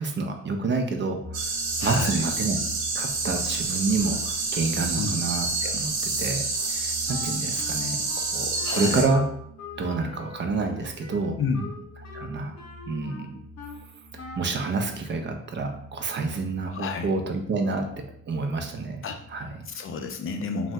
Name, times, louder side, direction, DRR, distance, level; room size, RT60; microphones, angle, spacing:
voice 1, 0.0-1.5 1.8-2.6 2.9-6.4 6.7-9.2 9.8-11.4 12.1-12.5 12.9-13.4 14.4-17.9 18.3-19.0 19.3-19.5, right 3 dB, 40° right, 4 dB, 0.4 m, -28 dB
sound 1, 1.2-19.9, equal, 10° right, 0.8 m, -44 dB
sound 2, 1.3-9.0, right 3 dB, 75° right, 0.7 m, -28 dB
voice 2, 1.8-2.2 5.0-5.2 8.6-9.0 11.4-11.7 16.7-17.1 19.0-19.2 19.7-20.7, left 4 dB, 45° left, 5 dB, 0.4 m, -30 dB
Wind instrument woodwind instrument, 7.1-13.8 14.2-14.6, left 4 dB, 60° left, 0.8 m, -43 dB
2.6 x 2.0 x 3.3 m, 0.69 s
cardioid pair, 90°, 30 cm